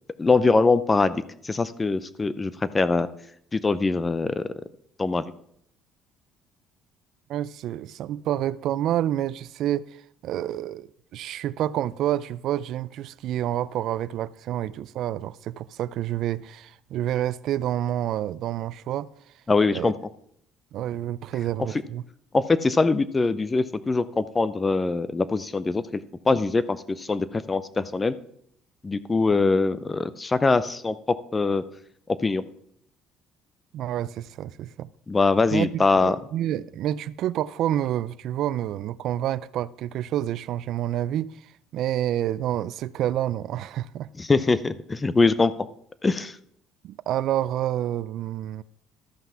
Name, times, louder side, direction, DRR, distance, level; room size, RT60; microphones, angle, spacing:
voice 1, 0.2-3.1 3.5-4.4 5.0-5.3 19.5-19.9 22.3-25.8 26.2-28.1 28.8-31.0 31.3-31.6 32.2-32.4 35.1-36.2 44.2-45.5 46.0-46.4, left 3 dB, 20° left, 0.5 m, -22 dB
voice 2, 7.3-10.9 11.1-19.1 19.7-19.9 20.7-22.0 33.7-34.9 35.5-41.4 41.7-44.1 46.8-48.6, right 12 dB, 60° right, 0.3 m, -28 dB
13.0 x 5.9 x 5.6 m
cardioid pair, 130°, 0 cm